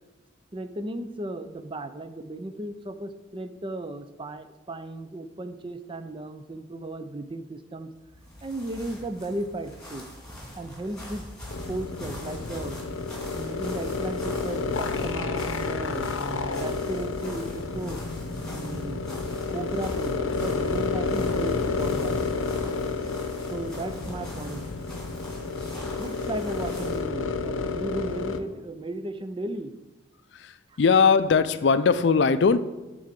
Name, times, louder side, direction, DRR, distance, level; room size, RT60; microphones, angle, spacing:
voice 1, 0.5-7.9 8.4-10.1 10.6-11.3 11.7-12.8 13.3-18.0 18.4-19.1 19.5-22.2 23.5-24.7 26.0-29.7 30.7-30.8, right 2 dB, 25° right, 0.5 m, -35 dB
sound 1, 8.0-27.1, left 1 dB, 5° left, 2.4 m, -43 dB
sound 2, 11.5-28.4, left 4 dB, 90° left, 0.7 m, -30 dB
voice 2, 30.3-32.6, left 5 dB, 60° left, 0.4 m, -20 dB
10.5 x 3.8 x 7.4 m
head